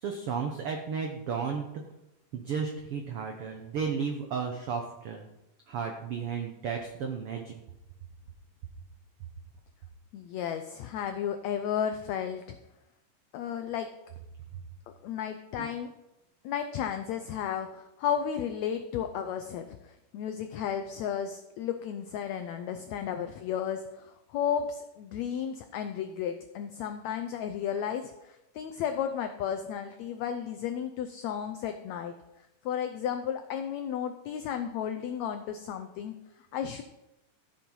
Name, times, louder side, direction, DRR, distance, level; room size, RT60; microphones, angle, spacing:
voice 1, 0.0-1.7 2.3-5.3 5.7-7.5 15.6-15.7, right 6 dB, 85° right, 3 dB, 1.2 m, -33 dB
voice 2, 10.1-12.6 13.3-13.9 15.0-15.9 16.4-32.1 32.6-36.2 36.5-36.8, left 8 dB, 85° left, 7 dB, 1.5 m, -33 dB
13.5 x 6.1 x 5.4 m, 0.92 s
omnidirectional pair, 3.9 m